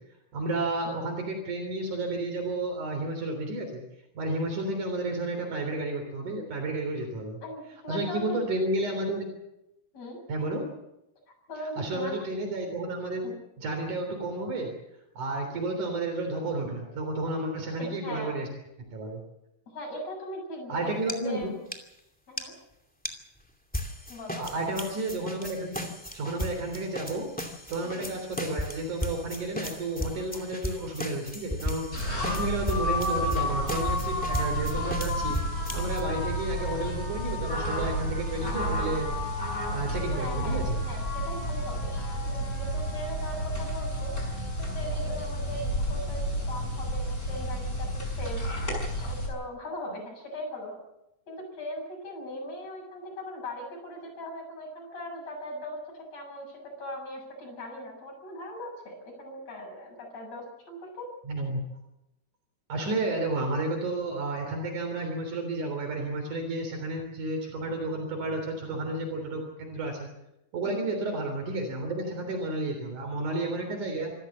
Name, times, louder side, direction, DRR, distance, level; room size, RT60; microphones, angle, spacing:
voice 1, 0.3-3.8 4.1-7.4 7.9-9.2 10.3-10.6 11.8-13.3 13.6-14.7 15.2-18.5 18.9-19.2 20.7-21.5 24.4-25.9 26.1-27.3 27.7-35.4 35.7-39.1 39.7-40.8 61.3-61.6 62.7-70.1 70.5-74.1, right 2 dB, 75° right, 3 dB, 5.0 m, -31 dB
voice 2, 7.4-8.4 9.9-10.2 11.5-12.1 13.2-13.4 17.8-18.3 19.7-21.5 22.3-22.5 24.1-24.5 27.8-28.0 38.9-39.0 40.1-44.1 44.6-48.4 49.0-50.8 51.3-61.1 70.6-70.8, left 1 dB, 55° left, 0 dB, 8.2 m, -39 dB
sound 1, 21.1-21.2 21.4-21.5 21.7-21.8 22.4-22.5 23.1-23.2 23.7-36.0, left 1 dB, 5° left, 1.9 m, -36 dB
sound 2, 31.9-49.3, equal, 25° left, 6.9 m, -31 dB
26.5 x 14.5 x 7.5 m, 0.88 s
omnidirectional pair, 3.6 m